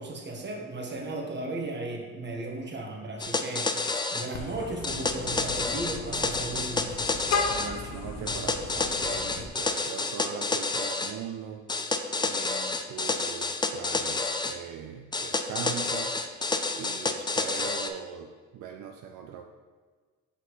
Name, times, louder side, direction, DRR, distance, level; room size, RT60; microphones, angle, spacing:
voice 1, 0.0-3.8 4.1-7.0, right 2 dB, 35° right, 0 dB, 1.3 m, -35 dB
sound 1, 3.2-4.3 4.8-7.7 8.3-11.1 11.7-14.6 15.1-17.9, left 3 dB, 15° left, 0.4 m, -29 dB
Vehicle horn car horn honking, 4.3-9.5, left 4 dB, 65° left, 0.7 m, -35 dB
voice 2, 7.5-11.6 12.3-16.2 16.8-19.4, right 8 dB, 75° right, 4 dB, 0.5 m, -40 dB
5.9 x 5.8 x 3.1 m, 1.5 s
cardioid pair, 90°, 30 cm